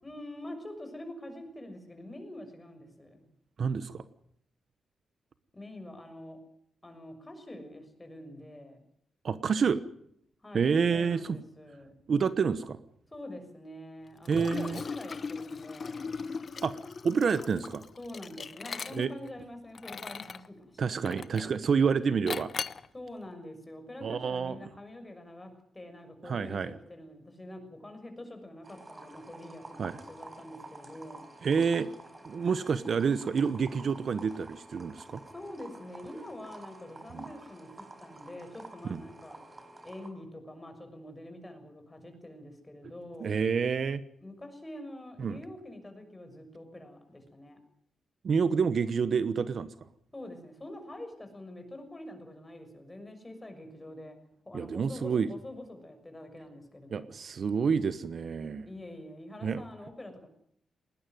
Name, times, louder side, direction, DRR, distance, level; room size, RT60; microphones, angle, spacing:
voice 1, 0.0-3.3 5.5-6.4 6.8-8.8 10.4-12.0 13.1-16.1 18.0-21.5 22.9-31.3 35.3-39.4 39.8-43.3 44.2-47.6 50.1-54.2 54.4-57.1 58.7-60.3, left 1 dB, 15° left, 6 dB, 6.5 m, -45 dB
voice 2, 3.6-4.0 9.2-9.8 10.5-11.4 12.1-12.8 14.3-14.8 16.6-16.7 17.0-17.8 18.9-19.1 20.8-22.5 24.0-24.6 26.2-26.7 29.8-30.0 31.4-31.9 32.2-35.2 37.1-37.2 38.9-39.0 43.2-44.0 45.2-45.4 48.2-49.7 54.5-55.3 56.9-58.7 59.4-59.6, right 6 dB, 55° right, 13 dB, 1.1 m, -28 dB
Liquid, 14.3-19.3 19.7-20.5 21.1-21.6 22.3-22.9, left 5 dB, 45° left, 1.0 m, -38 dB
sound 1, 28.6-40.1, right 2 dB, 25° right, 4.6 m, -49 dB
20.0 x 19.5 x 9.4 m, 0.69 s
cardioid pair, 105°, 0 cm